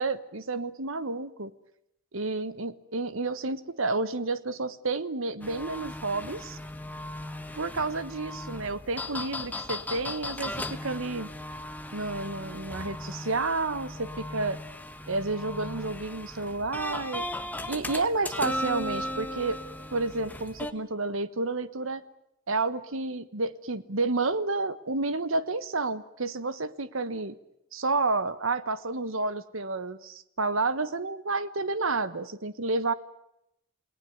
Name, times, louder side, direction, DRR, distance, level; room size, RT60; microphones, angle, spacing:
voice 1, 0.0-1.5 2.1-6.6 7.5-11.3 11.9-14.6 15.1-17.3 17.7-19.6 19.9-22.0 22.5-27.4 27.7-32.9, right 3 dB, 75° right, 14 dB, 1.3 m, -30 dB
sound 1, 5.4-20.7, left 1 dB, 10° left, 1.3 m, -37 dB
29.0 x 19.0 x 9.4 m, 0.80 s
head